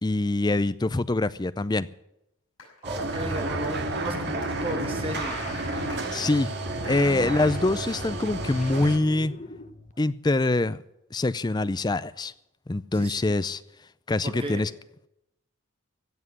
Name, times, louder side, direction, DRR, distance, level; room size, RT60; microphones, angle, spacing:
voice 1, 0.0-1.9 6.1-6.5 6.8-9.3 10.0-10.8 11.1-12.3 12.7-13.6 14.1-14.7, left 2 dB, 20° left, 15 dB, 0.4 m, -24 dB
sound 1, 2.6-8.5, left 4 dB, 85° left, 7.1 m, -53 dB
voice 2, 2.8-5.4 12.9-13.4 14.2-14.7, right 1 dB, 25° right, 4 dB, 2.0 m, -34 dB
sound 2, 2.8-9.0, right 2 dB, 55° right, 1.9 m, -31 dB
sound 3, 4.4-9.9, left 3 dB, 35° left, 0.9 m, -43 dB
16.0 x 7.4 x 9.8 m, 0.83 s
head